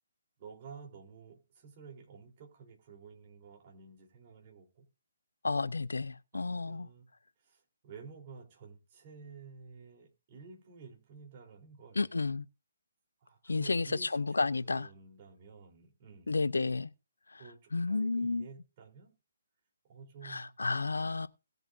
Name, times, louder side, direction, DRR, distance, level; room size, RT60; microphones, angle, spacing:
voice 1, 0.4-4.8 6.3-12.1 13.2-16.4 17.4-19.1 19.8-20.6, right 5 dB, 35° right, 3.7 m, -52 dB
voice 2, 5.4-6.9 12.0-12.4 13.4-14.9 16.3-16.9 17.3-17.4 17.7-18.5 20.2-21.3, left 3 dB, 70° left, 0.5 m, -31 dB
19.0 x 7.9 x 2.6 m
figure-of-eight pair, 135°, 0 cm